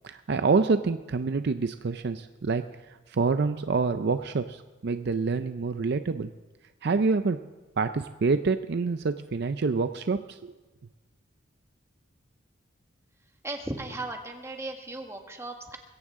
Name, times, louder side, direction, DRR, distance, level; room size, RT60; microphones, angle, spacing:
voice 1, 0.0-6.3 6.8-7.4 7.8-10.5, right 4 dB, 60° right, 10 dB, 0.5 m, -27 dB
voice 2, 13.4-15.8, right 2 dB, 15° right, 3 dB, 1.5 m, -36 dB
21.5 x 17.0 x 3.7 m, 1.2 s
head